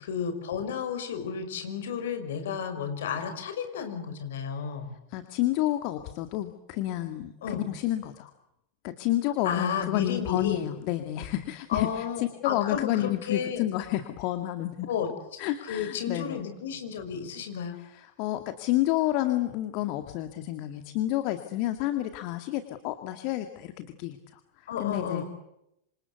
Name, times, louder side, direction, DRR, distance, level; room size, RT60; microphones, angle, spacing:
voice 1, 0.0-4.9 7.4-7.6 9.4-10.7 11.7-13.6 14.9-15.1 15.6-17.8 24.7-25.3, left 7 dB, 60° left, 7 dB, 5.7 m, -32 dB
voice 2, 5.1-8.3 8.8-14.9 15.4-16.5 17.7-25.2, left 14 dB, 45° left, 8 dB, 2.1 m, -30 dB
27.5 x 26.5 x 8.2 m, 0.83 s
figure-of-eight pair, 90°, 0 cm